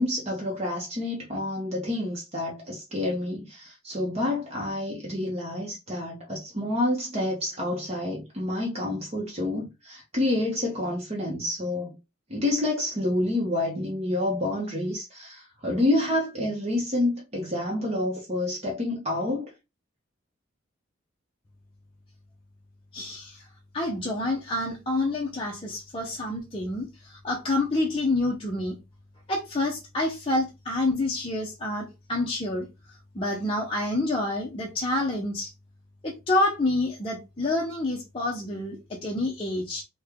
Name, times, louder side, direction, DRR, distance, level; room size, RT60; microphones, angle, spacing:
voice 1, 0.0-11.9 12.3-19.5, left 1 dB, 30° right, 0.7 m, -28 dB
voice 2, 22.9-23.5 23.7-28.8 29.3-32.7 33.1-35.5 36.0-39.8, left 2 dB, 25° left, 0.5 m, -28 dB
3.1 x 2.2 x 3.5 m
head